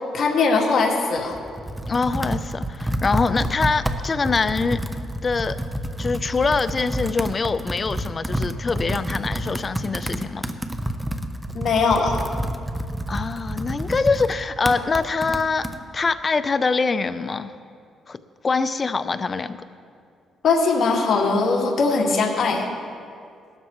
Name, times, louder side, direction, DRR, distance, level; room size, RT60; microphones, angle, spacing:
voice 1, 0.1-1.4 11.5-12.2 20.4-22.7, left 4 dB, 60° left, -1 dB, 2.1 m, -20 dB
Computer keyboard, 1.2-15.8, right 1 dB, 5° right, 0.8 m, -29 dB
voice 2, 1.9-4.8 5.2-5.6 6.0-10.5 13.1-15.7 15.9-17.5 18.1-18.2 18.4-19.6, left 4 dB, 35° left, 12 dB, 0.6 m, -24 dB
18.5 x 13.0 x 3.1 m, 2.3 s
cardioid pair, 90°, 0 cm